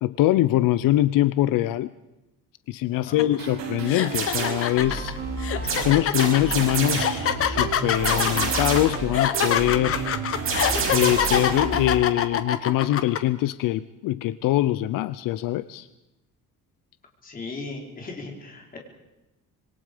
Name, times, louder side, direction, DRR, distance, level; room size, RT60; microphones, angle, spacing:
voice 1, 0.0-1.9 2.7-5.1 5.8-10.1 10.9-15.9, left 14 dB, 80° left, 15 dB, 0.7 m, -23 dB
sound 1, 3.2-3.4 3.9-13.2, left 9 dB, 45° left, 1.2 m, -25 dB
sound 2, 3.4-12.0, right 4 dB, 80° right, 4.8 m, -32 dB
sound 3, 4.1-4.7 5.7-7.2 8.0-9.0 9.3-9.7 10.5-11.6, right 4 dB, 40° right, 5.9 m, -28 dB
voice 2, 17.2-18.8, left 3 dB, 25° left, 1 dB, 3.8 m, -37 dB
26.0 x 22.0 x 5.1 m, 0.96 s
cardioid pair, 180°, 33 cm